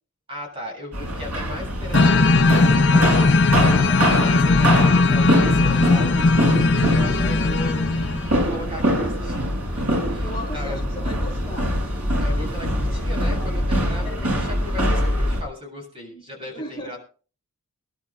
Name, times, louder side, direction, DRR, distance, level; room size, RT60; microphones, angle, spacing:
voice 1, 0.3-3.7 4.2-7.9 8.3-10.8 12.2-17.0, left 1 dB, 25° right, 0 dB, 7.3 m, -37 dB
sound 1, 0.9-15.4, equal, 90° right, 6.4 m, -24 dB
sound 2, 1.9-8.3, left 3 dB, 55° left, 0.6 m, -18 dB
voice 2, 3.7-4.1 6.7-7.6 10.2-11.8 14.0-14.3 16.1-17.0, left 1 dB, 20° left, -1 dB, 3.5 m, -37 dB
26.0 x 12.0 x 2.4 m, 0.39 s
head